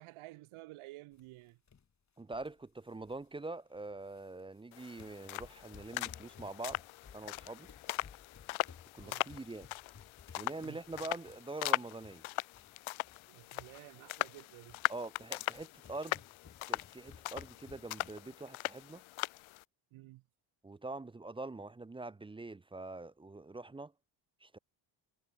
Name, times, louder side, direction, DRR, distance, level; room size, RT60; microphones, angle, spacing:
voice 1, 0.0-1.6 9.0-9.3 10.6-10.8 13.3-14.8 19.9-20.2, right 19 dB, 85° right, 1.7 m, -52 dB
sound 1, 1.1-1.3 1.7-1.9 2.3-3.3 3.8-4.6 5.0-12.8 13.0-13.3 13.6-13.8 14.1-18.4, left 6 dB, 35° left, 4.8 m, -58 dB
voice 2, 2.2-6.8 7.1-7.7 8.9-9.7 10.4-12.2 14.9-16.2 16.7-19.0 20.6-23.9 24.4-24.6, right 2 dB, 10° right, 0.5 m, -44 dB
sound 2, 4.7-19.6, left 21 dB, 80° left, 0.7 m, -40 dB
cardioid pair, 100°, 48 cm